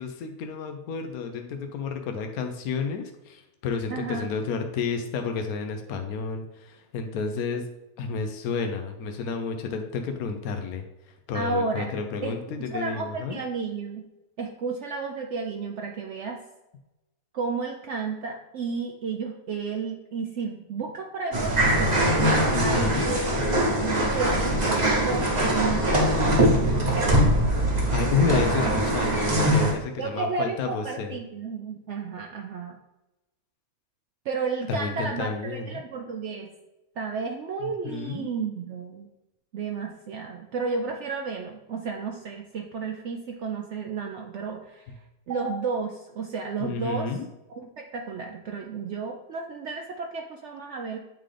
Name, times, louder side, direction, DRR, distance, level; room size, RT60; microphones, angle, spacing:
voice 1, 0.0-7.6 8.0-10.9 11.3-13.4 22.5-23.1 27.9-31.2 34.7-35.7 37.6-38.3 46.6-47.3, left 5 dB, 80° left, 5 dB, 1.1 m, -30 dB
voice 2, 3.9-4.3 11.3-11.9 12.2-14.0 14.4-16.4 17.3-23.2 23.6-26.1 30.0-32.8 34.2-36.5 37.0-39.1 39.5-45.0 45.3-47.2 47.5-51.0, right 5 dB, 65° right, 3 dB, 0.8 m, -32 dB
sound 1, 21.3-29.7, right 1 dB, 30° right, 1.1 m, -22 dB
8.8 x 3.7 x 3.3 m, 1.0 s
omnidirectional pair, 1.5 m